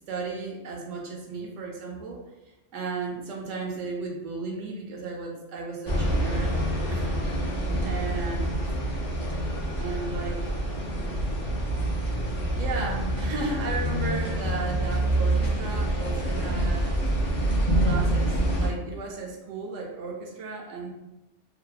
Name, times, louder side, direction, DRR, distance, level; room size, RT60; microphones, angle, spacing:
voice 1, 0.1-2.2 2.7-6.6 6.9-7.4 7.8-8.6 9.8-10.4 12.6-16.9 17.8-20.9, right 4 dB, 80° right, 0 dB, 1.0 m, -35 dB
sound 1, 5.9-18.7, right 1 dB, 40° left, 0.5 m, -26 dB
2.7 x 2.2 x 2.3 m, 0.96 s
omnidirectional pair, 1.3 m